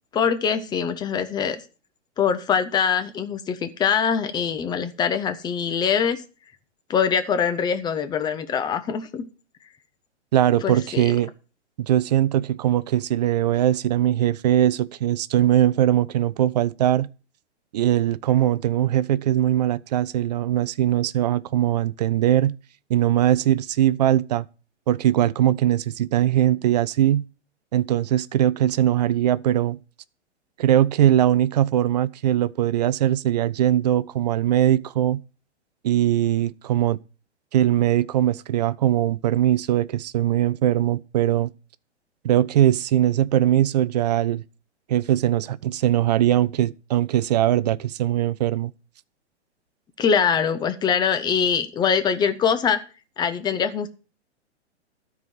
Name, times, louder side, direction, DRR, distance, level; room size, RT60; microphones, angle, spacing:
voice 1, 0.1-1.6 2.2-6.2 6.9-9.2 10.6-11.2 50.0-52.8 53.2-53.9, left 7 dB, 10° left, 0.7 m, -23 dB
voice 2, 10.3-11.3 11.8-17.1 17.7-22.5 22.9-24.5 24.9-27.2 27.7-29.8 30.6-35.2 35.8-37.0 37.5-41.5 42.2-44.4 44.9-48.7, right 12 dB, 40° right, 0.4 m, -21 dB
12.5 x 4.7 x 7.4 m
figure-of-eight pair, 110°, 35 cm